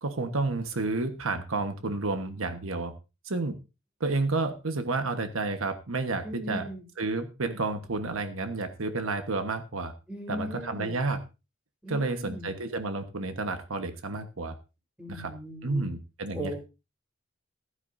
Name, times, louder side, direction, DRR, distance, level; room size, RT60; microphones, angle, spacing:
voice 1, 0.0-2.9 3.2-3.6 4.0-6.7 7.0-9.9 10.3-11.2 11.9-14.5 15.1-15.3 15.6-16.5, right 3 dB, 90° right, 8 dB, 1.3 m, -30 dB
voice 2, 6.2-6.8 10.1-11.0 11.8-12.5 15.0-15.9 16.3-16.6, left 1 dB, 5° right, 1 dB, 4.3 m, -38 dB
15.5 x 12.0 x 2.7 m, 0.28 s
head